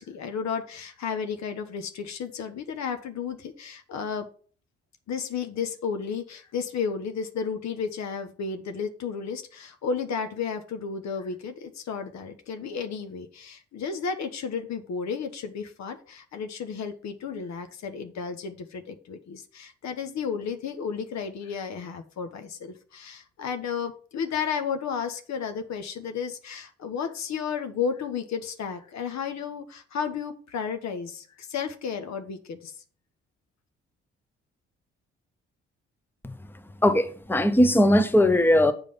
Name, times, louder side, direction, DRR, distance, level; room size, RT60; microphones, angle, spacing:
voice 1, 0.0-4.2 5.1-32.7, left 6 dB, 55° left, 1.1 m, -33 dB
voice 2, 36.8-38.7, left 1 dB, 5° left, 1.0 m, -19 dB
8.2 x 5.1 x 5.5 m
hypercardioid pair, 40°, 32 cm